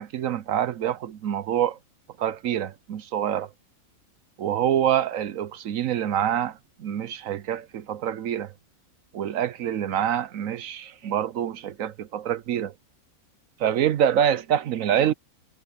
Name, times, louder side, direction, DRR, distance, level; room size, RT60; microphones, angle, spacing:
voice 1, 0.0-1.8 2.2-3.5 4.4-8.5 9.1-12.7 13.6-15.1, right 10 dB, 65° right, 1.0 m, -26 dB
omnidirectional pair, 1.6 m